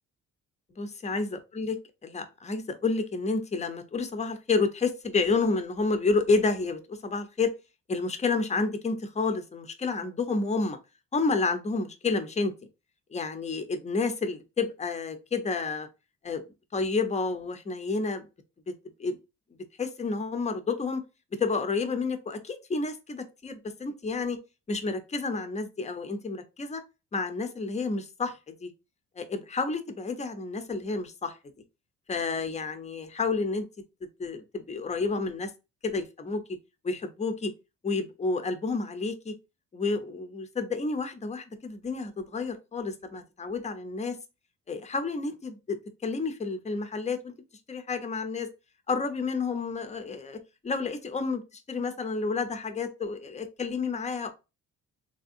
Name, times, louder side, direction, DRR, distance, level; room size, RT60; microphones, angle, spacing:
voice 1, 0.7-1.8 2.0-7.5 7.9-10.8 11.1-12.5 13.1-15.9 16.2-16.4 16.7-18.3 18.7-18.8 19.0-19.2 19.8-21.0 21.4-24.4 24.7-26.8 27.1-28.7 29.2-31.4 32.1-33.7 34.2-35.5 35.8-36.4 36.8-37.5 37.8-39.3 39.7-44.2 44.7-47.3 47.7-48.5 48.9-50.4 50.6-51.4 51.7-54.3, left 4 dB, 20° left, 8 dB, 0.6 m, -30 dB
3.4 x 2.6 x 2.5 m, 0.27 s
cardioid pair, 90°, 30 cm